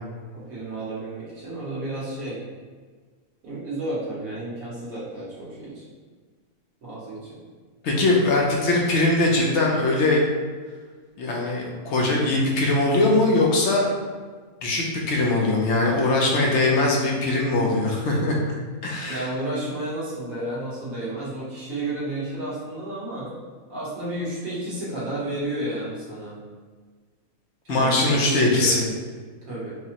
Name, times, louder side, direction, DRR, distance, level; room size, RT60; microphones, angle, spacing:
voice 1, 0.3-2.4 3.4-5.8 6.8-7.4 9.8-9.9 15.9-16.0 19.1-23.3 23.7-26.4 27.6-28.8 29.5-29.7, right 1 dB, 85° right, -8 dB, 1.6 m, -31 dB
voice 2, 7.8-10.3 11.2-13.9 14.6-19.3 27.7-28.9, left 2 dB, 65° left, -2 dB, 0.9 m, -21 dB
4.7 x 2.1 x 2.8 m, 1.5 s
omnidirectional pair, 1.4 m